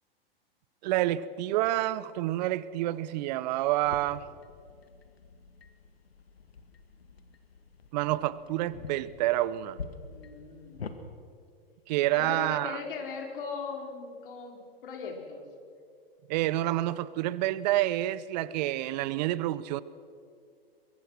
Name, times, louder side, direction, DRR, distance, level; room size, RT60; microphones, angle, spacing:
voice 1, 0.8-4.2 7.9-9.8 11.9-12.8 16.3-19.8, right 15 dB, 45° right, 18 dB, 0.8 m, -28 dB
sound 1, 3.8-11.0, left 5 dB, 80° left, 1.9 m, -46 dB
voice 2, 10.1-10.8 12.1-15.5, left 5 dB, 60° left, 3 dB, 4.4 m, -39 dB
23.0 x 23.0 x 6.3 m, 2.3 s
figure-of-eight pair, 105°, 30 cm